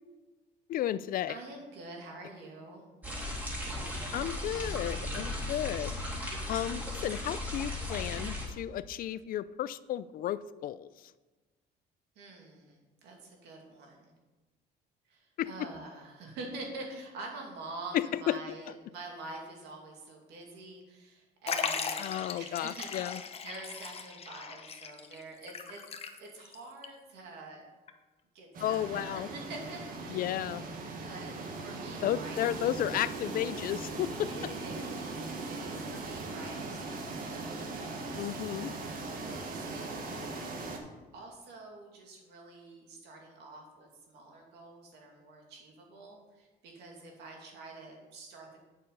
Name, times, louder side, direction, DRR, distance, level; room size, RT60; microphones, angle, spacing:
voice 1, 0.7-1.4 4.1-5.9 6.5-10.9 15.4-15.5 17.9-18.6 22.0-23.2 28.6-29.3 30.1-30.6 32.0-34.5 38.1-38.7, left 12 dB, 60° left, 16 dB, 0.4 m, -33 dB
voice 2, 1.3-2.8 12.2-14.1 15.1-23.2 23.4-25.8 26.1-27.6 28.3-30.4 31.0-32.5 34.3-38.8 39.1-40.7 41.1-48.6, right 2 dB, 80° right, 1 dB, 2.5 m, -47 dB
sound 1, 3.0-8.5, left 1 dB, 10° right, 2.7 m, -36 dB
Liquid, 21.5-26.5 26.8-26.9 27.9-28.0, left 6 dB, 35° left, 0.9 m, -37 dB
sound 2, 28.5-40.8, right 3 dB, 55° right, 1.5 m, -39 dB
8.7 x 6.7 x 5.5 m, 1.2 s
cardioid pair, 110°, 17 cm